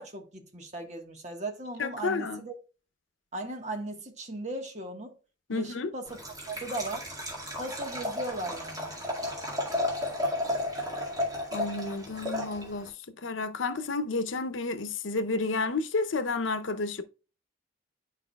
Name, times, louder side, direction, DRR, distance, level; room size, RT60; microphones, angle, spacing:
voice 1, 0.0-2.5 3.3-5.1 5.5-6.2 6.5-7.0 7.6-8.9, right 2 dB, 40° right, 1.4 m, -37 dB
voice 2, 1.8-2.4 5.5-5.9 11.5-12.9 13.2-17.0, left 3 dB, 90° left, 0.7 m, -31 dB
Liquid, 6.1-12.9, left 1 dB, 20° right, 1.9 m, -33 dB
11.0 x 4.8 x 2.3 m
head